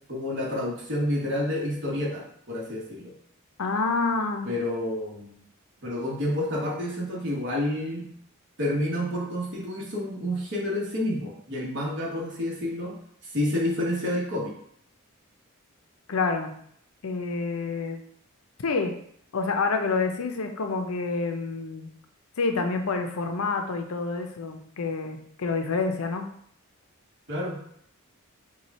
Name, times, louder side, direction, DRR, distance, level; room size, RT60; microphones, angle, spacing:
voice 1, 0.1-3.1 4.4-5.4 5.8-8.1 8.6-13.0 13.3-14.5 27.3-27.6, left 1 dB, 60° right, -3 dB, 1.3 m, -29 dB
voice 2, 3.6-4.5 16.1-16.5 17.0-18.0 18.6-18.9 19.3-21.9 22.4-26.3, left 4 dB, 85° left, 5 dB, 0.6 m, -28 dB
4.7 x 2.3 x 4.1 m, 0.67 s
head